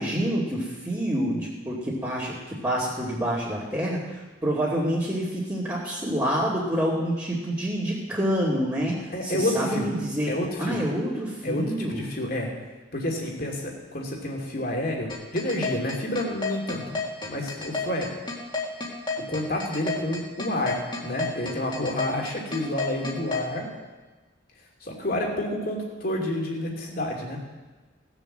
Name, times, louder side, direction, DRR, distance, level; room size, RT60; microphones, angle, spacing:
voice 1, 0.0-2.4 2.6-10.3 10.6-12.0, equal, 15° right, -9 dB, 2.6 m, -27 dB
voice 2, 9.1-9.9 10.3-10.8 11.4-12.5 12.9-17.0 17.3-18.1 19.2-23.7 24.8-27.4, left 1 dB, 50° left, 0 dB, 2.8 m, -29 dB
sound 1, 15.1-23.5, left 3 dB, 25° left, 2.2 m, -30 dB
18.0 x 7.2 x 7.5 m, 1.3 s
head